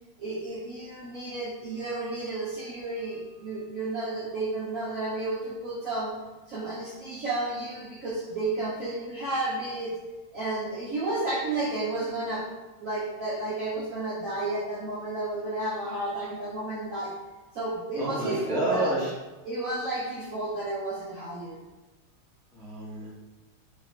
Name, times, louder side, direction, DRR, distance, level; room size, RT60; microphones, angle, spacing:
voice 1, 0.2-6.1 6.5-9.9 10.3-12.4 12.8-17.1 17.5-18.9 19.4-21.6, right 2 dB, 65° right, -7 dB, 0.8 m, -32 dB
voice 2, 18.0-19.1 22.5-23.1, right 1 dB, 5° left, -7 dB, 0.4 m, -29 dB
3.4 x 3.3 x 4.8 m, 1.2 s
omnidirectional pair, 2.3 m